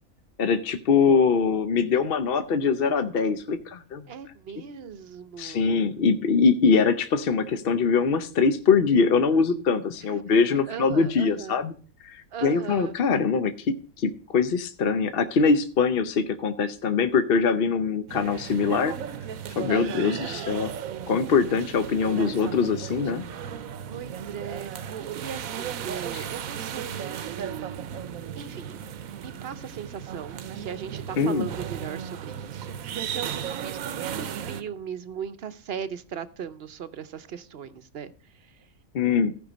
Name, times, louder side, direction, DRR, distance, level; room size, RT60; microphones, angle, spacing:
voice 1, 0.4-4.0 5.4-11.7 12.0-18.9 19.6-20.7 21.1-23.2 26.1-26.2 31.2-31.5 38.9-39.3, left 5 dB, 50° left, 10 dB, 0.8 m, -23 dB
voice 2, 4.1-5.9 10.1-11.6 12.3-13.0 19.7-20.4 22.0-22.6 23.9-27.1 27.4-28.0 28.3-28.8 29.2-38.6, right 7 dB, 55° right, 13 dB, 0.9 m, -38 dB
sound 1, 18.1-34.6, right 8 dB, 80° right, 1.2 m, -35 dB
15.0 x 5.4 x 5.1 m, 0.39 s
omnidirectional pair, 1.5 m